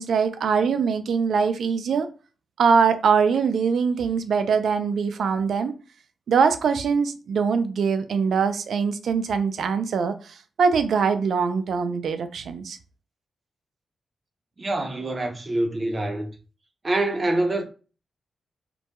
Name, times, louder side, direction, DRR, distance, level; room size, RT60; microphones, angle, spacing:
voice 1, 0.0-2.1 2.6-5.7 6.3-12.8, right 6 dB, 75° right, 0.3 m, -22 dB
voice 2, 14.6-16.3 16.8-17.6, right 2 dB, 30° right, 0.5 m, -25 dB
2.2 x 2.1 x 2.8 m
wide cardioid pair, 110°, 0 cm